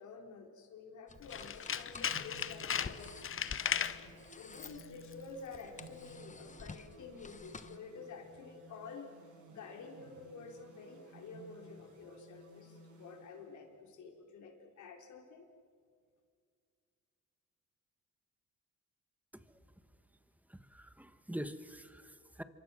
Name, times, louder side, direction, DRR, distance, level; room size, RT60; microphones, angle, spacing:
voice 1, 0.0-3.1 3.7-9.1 9.5-15.5, left 4 dB, 75° left, 3 dB, 3.9 m, -50 dB
sound 1, 1.1-7.8, left 4 dB, 25° left, 1.2 m, -52 dB
Tools, 1.2-4.0 4.5-4.9 5.1-5.2, left 8 dB, 45° left, 1.0 m, -36 dB
sound 2, 2.0-13.9, right 2 dB, 80° right, 6.6 m, -57 dB
voice 2, 20.5-22.4, equal, 5° right, 11 dB, 1.4 m, -45 dB
28.0 x 24.5 x 6.3 m, 2.2 s
cardioid pair, 90°, 30 cm